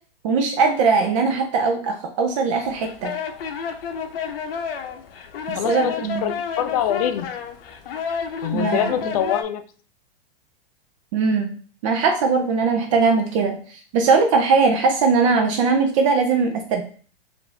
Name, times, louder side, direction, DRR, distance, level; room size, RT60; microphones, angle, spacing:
voice 1, 0.2-3.1 5.5-6.3 8.5-9.1 11.1-11.5 11.8-16.8, right 4 dB, 35° right, 4 dB, 0.5 m, -20 dB
sound 1, 2.6-9.4, left 7 dB, 75° left, 0.7 m, -30 dB
voice 2, 5.5-5.9 6.2-7.3 8.4-9.6, left 9 dB, 40° left, 9 dB, 0.4 m, -24 dB
4.7 x 2.6 x 3.2 m, 0.42 s
hypercardioid pair, 155°, 29 cm